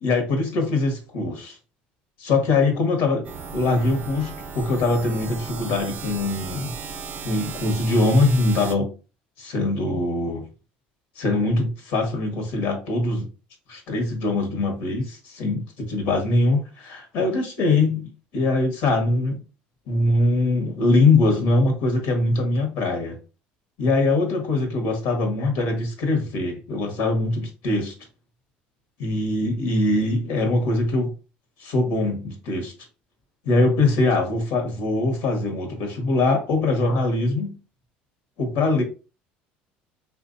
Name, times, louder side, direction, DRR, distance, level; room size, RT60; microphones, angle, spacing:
voice 1, 0.0-1.6 2.2-6.7 7.2-8.9 9.4-10.4 11.2-13.3 13.7-19.4 19.9-23.2 23.8-27.9 29.0-31.1 31.6-32.7 33.4-37.5 38.4-38.8, left 2 dB, 75° left, 4 dB, 1.2 m, -22 dB
sound 1, 3.2-8.7, right 5 dB, 45° right, 0.6 m, -36 dB
3.3 x 2.5 x 2.6 m, 0.34 s
supercardioid pair, 90°, 4 cm